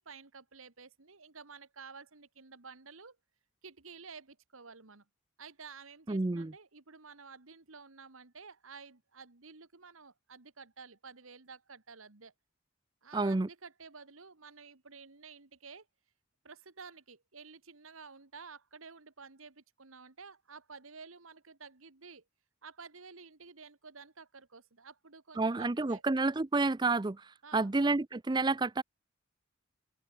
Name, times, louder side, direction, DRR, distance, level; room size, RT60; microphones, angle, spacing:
voice 1, 0.0-3.2 3.6-5.1 5.4-12.3 13.0-15.9 16.4-22.2 22.6-26.0 27.4-27.7, right 5 dB, 80° right, 1.9 m, -52 dB
voice 2, 6.1-6.5 13.1-13.5 25.4-28.8, right 3 dB, 20° right, 0.5 m, -30 dB
open air
head